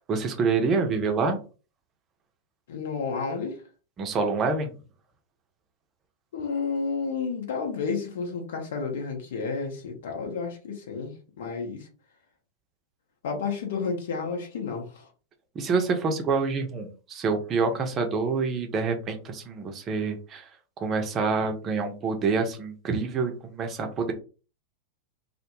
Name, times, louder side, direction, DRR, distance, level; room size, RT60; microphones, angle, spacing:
voice 1, 0.1-1.4 4.0-4.7 15.6-20.5 20.8-24.1, right 4 dB, 30° right, 5 dB, 0.5 m, -27 dB
voice 2, 2.7-3.6 6.3-11.9 13.2-15.1, left 5 dB, 60° left, 2 dB, 0.7 m, -31 dB
2.0 x 2.0 x 3.0 m, 0.35 s
figure-of-eight pair, 90°, 0 cm